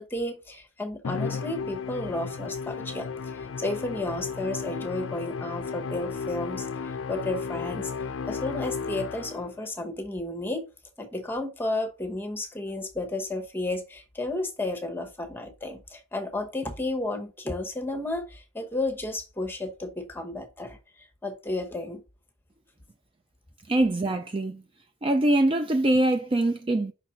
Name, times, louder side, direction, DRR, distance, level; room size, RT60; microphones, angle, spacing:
voice 1, 0.0-7.9 8.3-10.7 11.0-22.0, left 2 dB, 10° left, 1.0 m, -32 dB
Musical instrument, 1.0-9.6, left 5 dB, 70° left, 0.4 m, -34 dB
voice 2, 23.7-24.6 25.0-26.9, right 1 dB, 25° right, 0.4 m, -23 dB
5.6 x 4.1 x 4.2 m
head